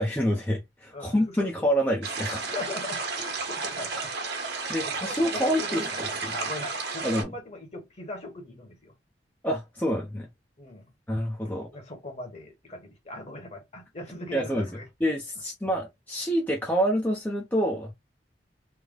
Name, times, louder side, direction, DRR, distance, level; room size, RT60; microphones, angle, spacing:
voice 1, 0.0-2.5 4.7-6.3 7.0-7.3 9.4-10.3 11.1-11.7 14.3-14.7 15.0-17.9, equal, 10° left, 0.6 m, -27 dB
voice 2, 0.9-1.5 2.4-4.4 4.8-6.0 6.3-8.9 10.6-10.9 11.4-14.9, left 2 dB, 40° left, 1.2 m, -40 dB
sound 1, 2.0-7.2, right 4 dB, 65° right, 1.2 m, -32 dB
3.4 x 2.2 x 3.6 m
head